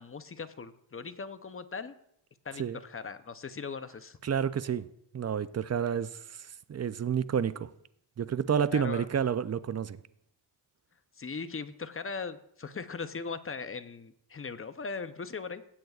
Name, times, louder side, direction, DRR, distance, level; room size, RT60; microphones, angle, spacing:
voice 1, 0.0-1.9 2.4-4.2 8.7-9.1 11.2-15.6, left 5 dB, 30° left, 0.6 m, -39 dB
voice 2, 4.2-4.9 5.1-7.7 8.2-10.0, right 7 dB, 35° right, 0.4 m, -30 dB
16.0 x 7.9 x 2.4 m
cardioid pair, 75°, 49 cm